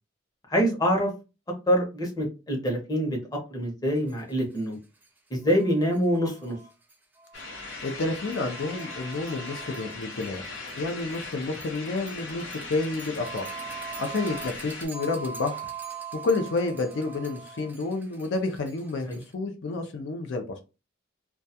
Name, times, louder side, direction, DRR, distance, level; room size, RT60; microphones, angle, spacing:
voice 1, 0.5-1.1 1.7-3.2 3.5-4.8 5.3-6.6 19.1-19.2, equal, 20° left, 0.7 m, -25 dB
sound 1, 4.1-4.2 4.6-4.7 5.0-5.1 5.4-19.3, right 5 dB, 10° right, 0.4 m, -43 dB
sound 2, 7.3-14.9, left 3 dB, 85° left, 0.9 m, -39 dB
voice 2, 7.8-13.5 14.0-15.7 16.2-20.4, left 3 dB, 65° left, 0.4 m, -30 dB
2.2 x 2.2 x 2.6 m
head